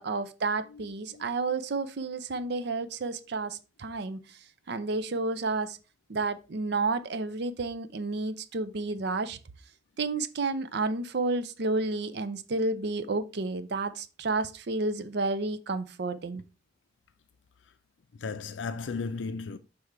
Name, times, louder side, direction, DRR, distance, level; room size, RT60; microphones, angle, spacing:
voice 1, 0.0-4.4 4.7-5.8 6.1-9.4 10.0-16.4, right 3 dB, 65° right, 0.6 m, -31 dB
voice 2, 18.1-19.6, left 4 dB, 80° left, 0.4 m, -35 dB
6.5 x 3.5 x 4.5 m
head